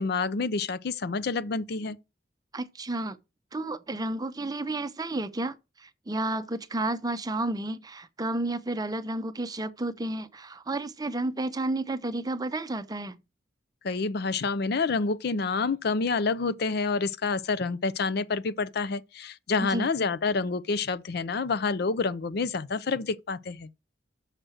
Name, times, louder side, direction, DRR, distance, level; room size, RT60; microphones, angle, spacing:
voice 1, 0.0-2.0 13.8-23.7, left 4 dB, 60° left, 0.5 m, -28 dB
voice 2, 2.5-3.2 3.5-13.2 19.6-19.9, right 2 dB, 20° right, 0.6 m, -31 dB
6.5 x 6.0 x 6.4 m
head